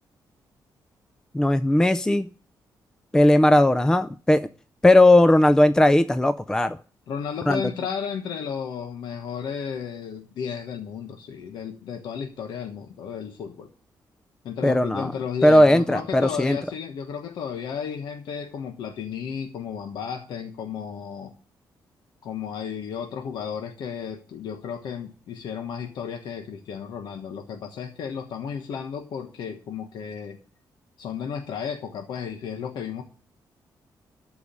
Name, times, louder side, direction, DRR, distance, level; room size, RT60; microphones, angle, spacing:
voice 1, 1.3-2.3 3.1-4.5 4.8-6.8 7.5-7.6 14.6-15.1 15.4-16.6, left 1 dB, 10° left, 12 dB, 0.4 m, -17 dB
voice 2, 7.1-13.7 14.4-21.4 22.2-30.4 31.0-33.0, left 7 dB, 85° left, 4 dB, 1.3 m, -33 dB
13.5 x 4.8 x 8.5 m, 0.39 s
cardioid pair, 135°, 7 cm